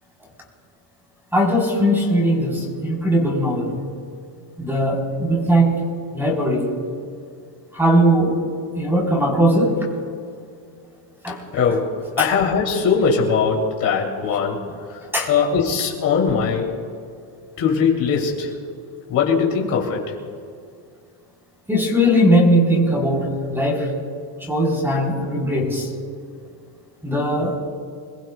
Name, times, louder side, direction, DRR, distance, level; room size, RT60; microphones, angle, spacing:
voice 1, 1.3-3.8 4.6-5.7 6.1-6.7 7.7-8.3 8.8-9.7 11.2-11.3 11.6-11.7 12.2-12.3 15.1-15.3 21.7-23.9 24.5-25.9 27.0-27.5, equal, 5° right, -2 dB, 3.8 m, -19 dB
voice 2, 11.5-14.6 15.3-16.8 17.6-18.5 19.1-20.1, left 6 dB, 40° left, -2 dB, 3.0 m, -20 dB
26.5 x 21.0 x 2.3 m, 2.3 s
cardioid pair, 160°, 50 cm